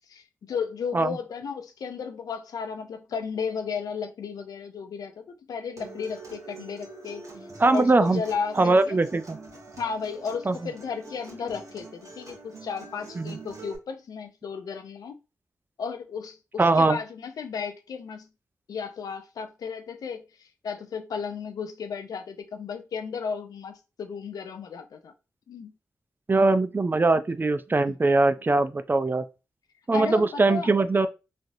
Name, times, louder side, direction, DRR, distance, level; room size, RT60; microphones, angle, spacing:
voice 1, 0.1-7.2 7.7-9.0 9.8-15.2 15.8-18.3 18.7-25.1 25.5-25.7 27.9-28.0 29.9-30.7, left 6 dB, 85° left, 0.4 m, -34 dB
Acoustic guitar, 5.8-13.8, right 3 dB, 60° right, 1.1 m, -44 dB
voice 2, 7.6-8.2 8.6-9.4 10.5-10.6 13.2-13.4 16.6-17.0 26.3-29.2 29.9-31.1, right 3 dB, 35° right, 0.4 m, -21 dB
3.2 x 2.4 x 2.6 m
cardioid pair, 45°, 6 cm